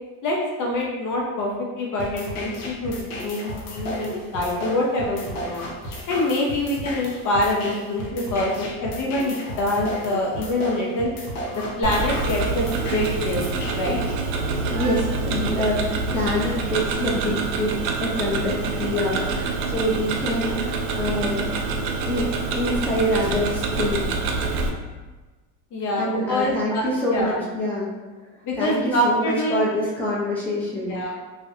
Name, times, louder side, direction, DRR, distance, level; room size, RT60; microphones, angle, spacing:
voice 1, 0.2-5.6 6.1-11.1 11.5-13.4 13.8-14.0 25.7-26.8 27.1-27.4 28.4-29.6 30.9-31.1, left 1 dB, 45° left, -2 dB, 0.6 m, -25 dB
sound 1, 2.0-14.0, left 1 dB, 80° left, 0.7 m, -34 dB
Tick-tock, 11.8-24.7, right 3 dB, 75° right, 0.5 m, -26 dB
voice 2, 14.7-15.8 16.1-17.7 18.0-21.5 22.1-22.3 22.6-24.0 26.0-27.9 28.5-31.1, left 1 dB, 5° left, -6 dB, 0.6 m, -26 dB
2.4 x 2.1 x 2.4 m, 1.3 s
supercardioid pair, 90°, 43 cm